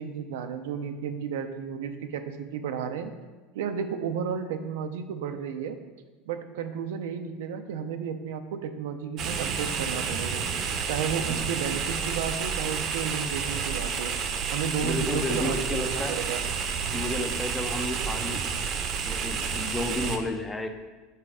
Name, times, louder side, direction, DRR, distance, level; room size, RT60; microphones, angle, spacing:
voice 1, 0.0-3.1 3.5-5.8 6.3-10.5 10.9-14.1 14.5-16.4, right 7 dB, 90° right, 7 dB, 0.5 m, -33 dB
sound 1, 9.2-20.2, right 6 dB, 40° right, 0.7 m, -30 dB
voice 2, 14.8-16.2 16.9-18.4 19.0-20.7, left 1 dB, 10° left, 6 dB, 0.5 m, -31 dB
5.6 x 4.1 x 4.8 m, 1.3 s
supercardioid pair, 140°, 0 cm